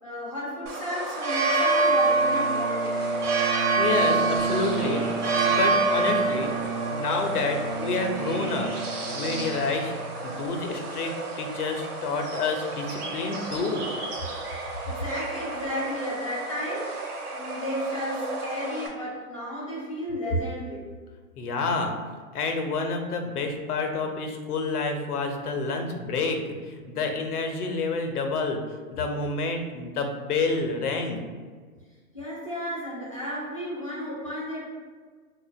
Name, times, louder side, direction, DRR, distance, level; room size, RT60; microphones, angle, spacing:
voice 1, 0.0-3.0 14.9-20.8 32.1-34.6, equal, 25° left, -9 dB, 0.4 m, -33 dB
sound 1, 0.7-18.9, right 3 dB, 85° right, 0.9 m, -28 dB
Bowed string instrument, 1.8-10.3, right 5 dB, 30° right, 1.1 m, -33 dB
voice 2, 3.8-5.1 5.5-6.5 6.9-8.7 9.1-9.9 10.2-13.9 21.4-21.9 22.3-26.4 26.7-28.6 28.9-31.2, left 4 dB, 80° left, 4 dB, 0.7 m, -28 dB
4.1 x 2.4 x 2.2 m, 1.5 s
hypercardioid pair, 165°, 44 cm